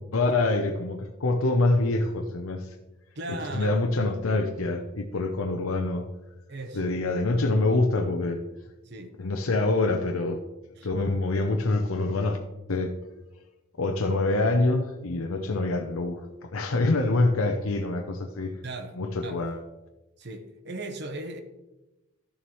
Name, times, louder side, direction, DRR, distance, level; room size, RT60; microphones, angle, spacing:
voice 1, 0.1-2.7 3.5-6.1 6.7-8.4 9.2-10.4 10.8-12.4 12.7-12.9 13.8-18.5 19.0-19.6, left 2 dB, 90° left, 5 dB, 0.7 m, -25 dB
voice 2, 3.2-3.8 6.5-6.9 8.8-9.1 10.8-10.9 18.6-18.9 19.2-19.4 20.2-21.4, right 2 dB, 55° right, 7 dB, 0.9 m, -37 dB
12.5 x 7.1 x 3.1 m, 1.0 s
head